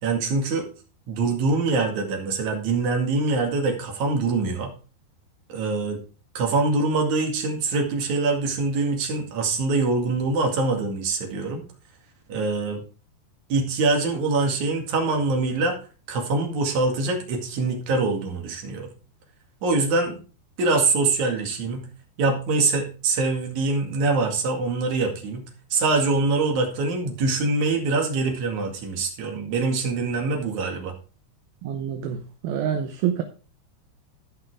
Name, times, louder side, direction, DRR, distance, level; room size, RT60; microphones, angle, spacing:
voice 1, 0.0-0.7 1.1-4.7 5.5-6.0 6.3-11.6 12.3-12.8 13.5-15.8 16.1-18.9 19.6-20.2 20.6-21.9 22.2-30.9, right 3 dB, 50° right, 2 dB, 3.1 m, -24 dB
voice 2, 31.6-33.2, right 9 dB, 75° right, 6 dB, 2.4 m, -27 dB
13.5 x 5.7 x 4.8 m, 0.36 s
omnidirectional pair, 5.0 m